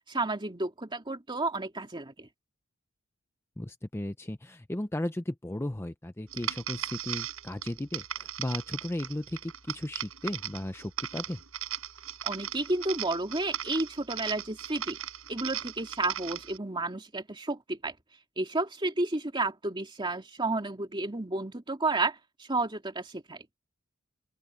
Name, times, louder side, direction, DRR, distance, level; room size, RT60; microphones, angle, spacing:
voice 1, 0.1-2.3 12.2-15.0 15.3-17.9 18.4-23.4, right 2 dB, 25° right, 2.5 m, -31 dB
voice 2, 3.6-11.4, left 1 dB, 10° left, 0.6 m, -35 dB
sound 1, 6.3-16.6, right 10 dB, 90° right, 6.5 m, -38 dB
open air
head